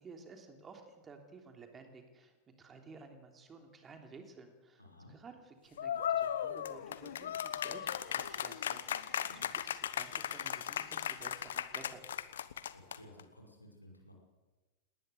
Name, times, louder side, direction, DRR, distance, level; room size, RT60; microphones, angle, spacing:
voice 1, 0.0-12.0, right 4 dB, 20° right, 4 dB, 3.4 m, -54 dB
voice 2, 4.8-5.1 9.3-9.4 12.7-14.1, left 1 dB, 85° left, 1 dB, 5.7 m, -56 dB
sound 1, 5.8-13.2, left 9 dB, 65° left, 1.1 m, -37 dB
sound 2, 6.5-12.4, left 10 dB, 35° left, 2.2 m, -60 dB
19.5 x 19.0 x 8.2 m, 1.2 s
figure-of-eight pair, 90°, 0 cm